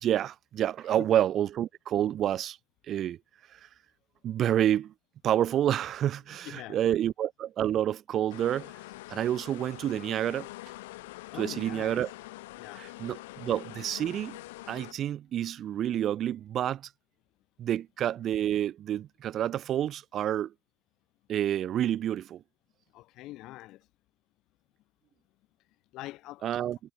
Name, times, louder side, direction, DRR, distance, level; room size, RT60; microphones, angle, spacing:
voice 1, 0.0-2.6 2.9-3.2 3.6-3.7 4.2-4.9 5.2-8.7 9.1-10.5 11.3-12.1 12.7-14.4 14.7-16.9 17.6-20.5 21.3-22.4 26.4-26.8, right 11 dB, 40° right, 1.1 m, -28 dB
voice 2, 6.4-6.8 9.1-9.3 11.3-12.0 12.6-12.9 22.9-23.9 25.9-26.4, left 17 dB, 55° left, 1.0 m, -43 dB
sound 1, 8.3-14.9, left 20 dB, 85° left, 3.9 m, -45 dB
supercardioid pair, 125°, 0 cm